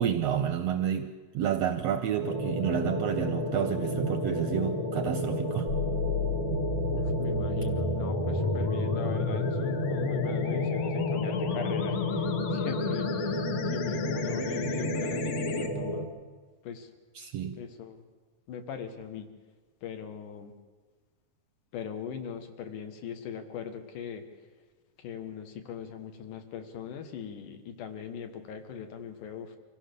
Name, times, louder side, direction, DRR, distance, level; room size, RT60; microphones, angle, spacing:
voice 1, 0.0-5.7 17.1-17.6, right 9 dB, 75° right, 9 dB, 1.5 m, -30 dB
sound 1, 2.2-16.0, equal, 15° left, 1.0 m, -32 dB
sound 2, 5.7-15.7, left 5 dB, 60° left, 2.0 m, -32 dB
voice 2, 6.9-13.4 13.7-16.1 16.6-16.9 17.6-18.0 18.5-19.3 19.8-20.5 21.7-24.2 25.0-29.6, left 7 dB, 80° left, 7 dB, 2.9 m, -40 dB
24.5 x 15.5 x 6.8 m, 1.4 s
omnidirectional pair, 3.6 m